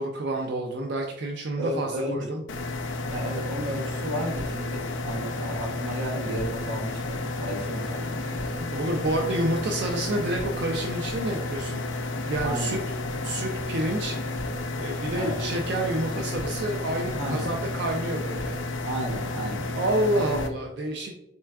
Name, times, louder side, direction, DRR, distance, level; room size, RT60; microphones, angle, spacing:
voice 1, 0.0-2.4 8.7-12.8 13.2-14.2 14.8-18.6 19.7-21.1, right 1 dB, 60° right, 1 dB, 0.4 m, -29 dB
voice 2, 1.5-2.4 3.1-8.7 12.4-12.8 15.2-15.4 17.1-17.5 18.8-19.7, equal, 90° right, 1 dB, 0.9 m, -33 dB
sound 1, 2.5-20.5, left 2 dB, 90° left, 0.5 m, -31 dB
4.4 x 3.3 x 2.3 m, 0.88 s
head